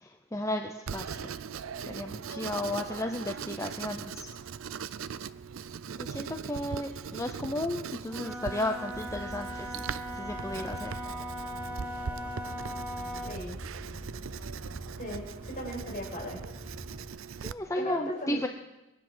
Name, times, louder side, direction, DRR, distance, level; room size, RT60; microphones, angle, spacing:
voice 1, 0.0-1.3 1.9-4.3 6.0-9.8 10.2-10.9 13.0-13.2 13.9-14.0 17.4-18.5, left 1 dB, 15° left, 5 dB, 0.6 m, -34 dB
Writing, 0.9-17.5, right 6 dB, 70° right, 0.5 m, -40 dB
Wind instrument woodwind instrument, 8.0-13.4, equal, 5° right, 1.6 m, -39 dB
sound 1, 8.9-17.1, equal, 30° right, 2.7 m, -45 dB
voice 2, 13.3-13.6 15.0-16.4 17.7-18.5, equal, 45° left, -2 dB, 5.4 m, -37 dB
21.5 x 9.4 x 6.1 m, 1.0 s
head